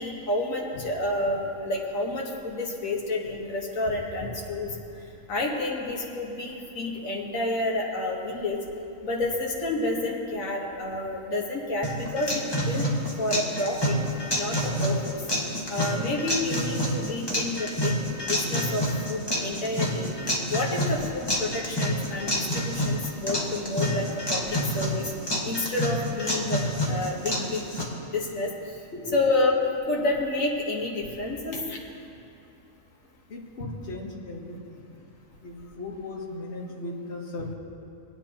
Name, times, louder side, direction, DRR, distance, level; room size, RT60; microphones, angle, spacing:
voice 1, 0.0-4.7 5.3-8.6 9.0-12.9 13.2-14.0 14.3-15.2 15.7-20.1 20.5-25.0 25.4-27.6 28.1-28.5 29.1-29.6 29.9-31.8, left 2 dB, 85° left, -2 dB, 1.8 m, -29 dB
sound 1, 11.8-27.8, equal, 20° left, 1.3 m, -28 dB
voice 2, 33.3-35.0 35.4-37.5, left 2 dB, 55° left, 0 dB, 1.4 m, -37 dB
21.0 x 9.0 x 2.9 m, 2.7 s
omnidirectional pair, 1.4 m